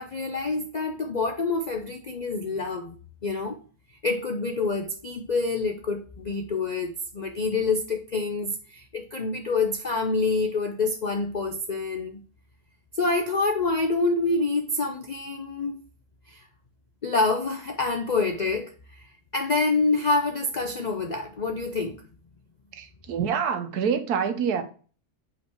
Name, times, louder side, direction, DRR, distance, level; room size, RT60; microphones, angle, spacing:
voice 1, 0.0-3.0 3.2-3.6 4.0-12.2 13.0-15.8 16.3-16.4 17.0-19.0 19.3-22.0, left 3 dB, 70° left, 0.4 m, -27 dB
voice 2, 22.7-24.6, right 7 dB, 80° right, 1.4 m, -26 dB
5.3 x 4.0 x 4.5 m
omnidirectional pair, 1.6 m